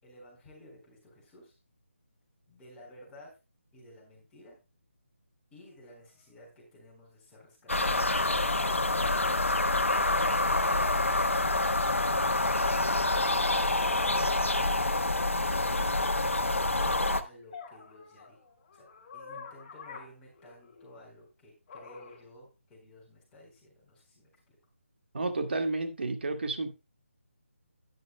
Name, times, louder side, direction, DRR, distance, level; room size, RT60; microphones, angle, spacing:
voice 1, 0.0-1.6 2.5-3.4 3.7-4.6 5.5-8.2 17.2-18.4 18.7-18.9 19.1-24.6, left 1 dB, 10° left, -4 dB, 4.0 m, -54 dB
sound 1, 6.0-6.1 8.4-9.7 10.1-11.1 13.8-14.1 17.5-21.0 21.7-22.2, left 5 dB, 25° left, 4.8 m, -47 dB
sound 2, 7.7-17.2, left 2 dB, 75° left, 1.2 m, -27 dB
voice 2, 25.1-26.7, right 2 dB, 55° right, 6 dB, 2.0 m, -31 dB
12.0 x 10.5 x 2.2 m, 0.27 s
figure-of-eight pair, 155°, 7 cm